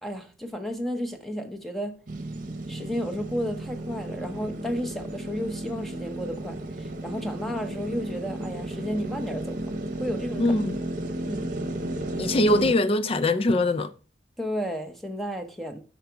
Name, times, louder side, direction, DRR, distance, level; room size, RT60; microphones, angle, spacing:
voice 1, 0.0-2.0 2.7-10.6 11.2-11.5 14.4-15.8, equal, ahead, 0.8 m, -33 dB
sound 1, 2.1-12.7, right 1 dB, 45° right, 1.0 m, -33 dB
voice 2, 10.4-10.8 12.2-13.9, left 2 dB, 30° left, 0.4 m, -22 dB
8.3 x 6.0 x 4.6 m
head